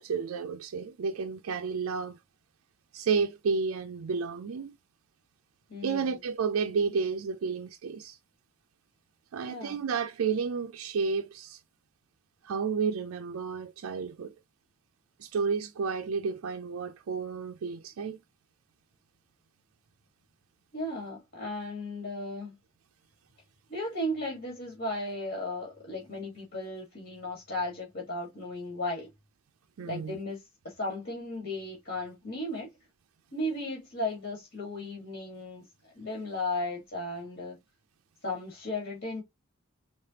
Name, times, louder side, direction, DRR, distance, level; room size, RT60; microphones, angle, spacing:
voice 1, 0.0-2.2 2.9-4.8 5.8-8.2 9.3-11.6 12.4-14.3 15.2-18.2 29.8-30.2, right 5 dB, 80° right, 0.4 m, -31 dB
voice 2, 5.7-6.2 9.4-9.8 20.7-22.6 23.7-29.1 29.8-32.7 33.3-35.6 35.9-37.6 38.2-39.2, left 1 dB, 55° left, 1.7 m, -35 dB
4.2 x 3.3 x 2.8 m
head